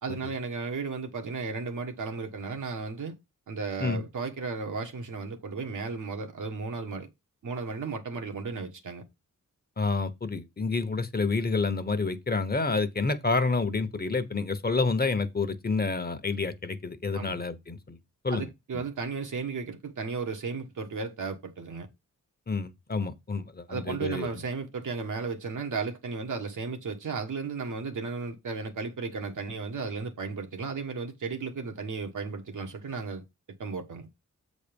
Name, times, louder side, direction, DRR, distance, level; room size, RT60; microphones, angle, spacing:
voice 1, 0.0-3.1 3.5-7.1 7.4-9.0 17.1-17.4 18.3-21.9 23.7-33.2 33.6-34.1, right 4 dB, 80° right, 1.5 m, -34 dB
voice 2, 9.8-18.0 18.2-18.5 18.7-18.8 22.5-24.3, left 4 dB, 30° left, 1.0 m, -29 dB
7.9 x 4.1 x 5.2 m
wide cardioid pair, 95°, 30 cm